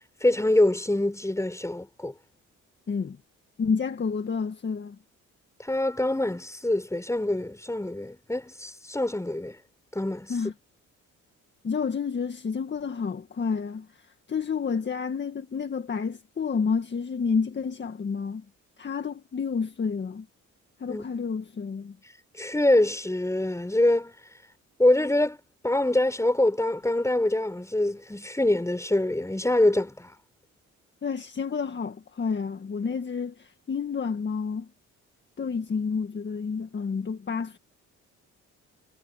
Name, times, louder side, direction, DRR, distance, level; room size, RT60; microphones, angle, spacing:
voice 1, 0.2-2.1 5.6-9.5 9.9-10.3 20.9-21.1 22.4-24.1 24.8-25.4 25.6-30.1, left 1 dB, 10° left, 6.6 m, -24 dB
voice 2, 3.6-5.0 10.3-10.5 11.6-13.9 14.3-18.4 18.8-20.3 20.8-22.0 31.0-34.7 35.4-37.6, left 5 dB, 35° left, 1.8 m, -29 dB
cardioid pair, 90°, 30 cm